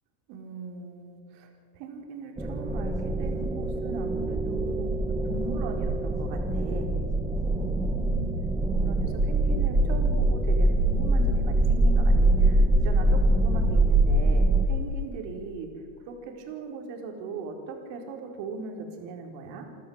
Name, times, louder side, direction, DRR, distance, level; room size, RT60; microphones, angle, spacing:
voice 1, 0.3-1.5 1.7-5.0 5.3-6.9 7.5-8.3 8.6-15.7 16.1-19.6, right 4 dB, 55° right, 3 dB, 4.6 m, -39 dB
sound 1, 2.4-14.6, right 2 dB, 5° right, 1.5 m, -24 dB
29.0 x 13.0 x 8.1 m, 2.2 s
supercardioid pair, 140°, 50 cm